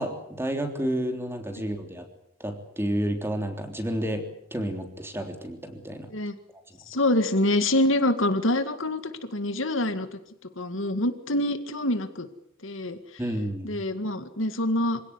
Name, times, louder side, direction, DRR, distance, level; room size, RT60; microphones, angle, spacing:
voice 1, 0.0-2.1 2.4-6.1 13.2-13.8, right 1 dB, 10° right, 5 dB, 3.4 m, -30 dB
voice 2, 6.9-10.2 10.6-12.3 12.6-13.0 13.6-15.0, left 1 dB, 65° left, 9 dB, 2.1 m, -26 dB
26.5 x 17.0 x 9.7 m, 0.77 s
head